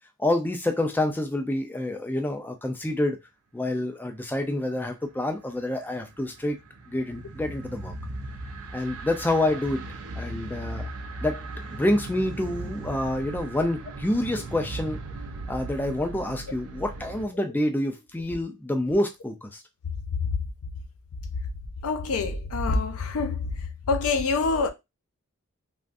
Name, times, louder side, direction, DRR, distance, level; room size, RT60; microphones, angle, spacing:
voice 1, 0.2-3.2 3.5-6.6 6.9-7.9 8.7-9.8 10.2-10.9 11.2-11.4 11.7-15.0 15.5-19.6, left 1 dB, 10° left, 0.4 m, -27 dB
sound 1, 5.5-17.3, right 2 dB, 90° right, 0.5 m, -38 dB
voice 2, 21.8-23.5 23.9-24.7, left 4 dB, 80° left, 0.6 m, -25 dB
3.4 x 2.4 x 2.5 m
head